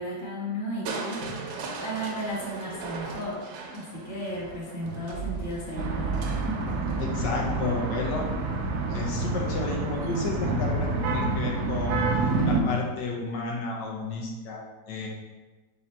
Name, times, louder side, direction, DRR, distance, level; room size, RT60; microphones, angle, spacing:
voice 1, 0.0-1.5 1.8-3.4 3.7-6.2 6.4-6.6, equal, 15° left, -6 dB, 0.8 m, -34 dB
Crushing, 0.9-8.8 10.4-10.9 11.4-11.5, right 5 dB, 85° right, 1.3 m, -38 dB
sound 1, 5.8-12.6, right 3 dB, 70° right, 0.8 m, -28 dB
Bass guitar, 6.6-11.0, left 1 dB, 45° right, 1.1 m, -44 dB
voice 2, 7.0-8.2 8.9-12.0 12.4-15.1, left 3 dB, 80° left, -1 dB, 1.4 m, -31 dB
4.1 x 2.8 x 4.3 m, 1.2 s
omnidirectional pair, 1.9 m